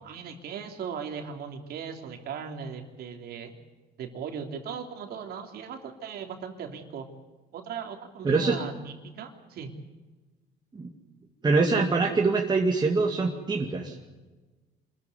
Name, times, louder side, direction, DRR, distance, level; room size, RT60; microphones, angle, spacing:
voice 1, 0.0-3.5 4.0-7.1 7.5-9.7, right 7 dB, 65° right, 4 dB, 3.3 m, -38 dB
voice 2, 8.2-8.6 10.7-10.9 11.4-14.0, right 3 dB, 25° right, 0 dB, 2.3 m, -24 dB
26.0 x 14.5 x 9.6 m, 1.2 s
cardioid pair, 110°, 17 cm